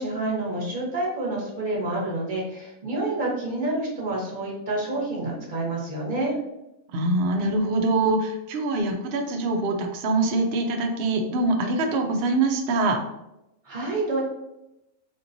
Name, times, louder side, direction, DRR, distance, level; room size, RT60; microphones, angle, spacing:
voice 1, 0.0-6.3 13.6-14.2, right 2 dB, 35° right, -3 dB, 1.0 m, -28 dB
voice 2, 6.9-13.0, right 2 dB, 60° right, 3 dB, 0.6 m, -24 dB
4.3 x 2.9 x 2.6 m, 0.90 s
omnidirectional pair, 1.6 m